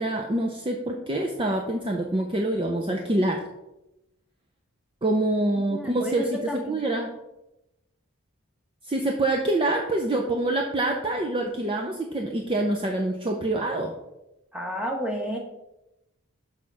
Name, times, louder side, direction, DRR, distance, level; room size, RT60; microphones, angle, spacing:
voice 1, 0.0-3.4 5.0-6.4 6.7-7.1 8.8-13.9, right 1 dB, 25° right, 2 dB, 0.6 m, -26 dB
voice 2, 5.6-6.8 14.5-15.4, equal, 5° right, 0 dB, 1.3 m, -32 dB
6.6 x 5.6 x 4.8 m, 0.92 s
head